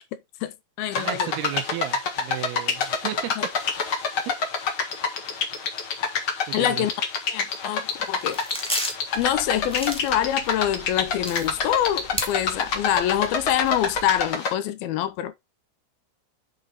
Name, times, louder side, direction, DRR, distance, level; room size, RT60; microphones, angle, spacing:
voice 1, 0.4-1.3 6.5-6.9 7.3-8.4 9.2-15.4, left 11 dB, 80° left, 2.5 m, -25 dB
sound 1, 0.9-14.5, left 5 dB, 50° left, 1.6 m, -27 dB
voice 2, 0.9-3.5 4.3-4.6 6.5-6.9, right 12 dB, 80° right, 2.9 m, -34 dB
sound 2, 7.9-8.0 8.2-9.2 9.6-10.5 10.8-10.9 11.2-12.3 12.7-12.8 13.2-13.7, equal, 5° left, 0.7 m, -31 dB
sound 3, 9.1-14.3, right 8 dB, 20° right, 2.7 m, -45 dB
8.2 x 5.0 x 4.0 m
omnidirectional pair, 4.6 m